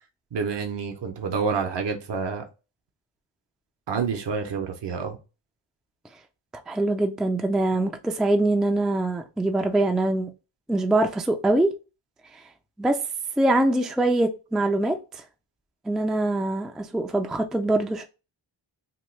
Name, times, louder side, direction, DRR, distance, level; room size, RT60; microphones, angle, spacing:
voice 1, 0.3-2.4 3.9-5.2, right 5 dB, 55° right, 0.8 m, -28 dB
voice 2, 6.7-10.3 10.7-11.7 12.3-12.4 12.8-13.0 13.4-15.2 15.9-18.0, right 2 dB, ahead, 0.3 m, -23 dB
3.0 x 2.3 x 3.1 m
wide cardioid pair, 55°, 49 cm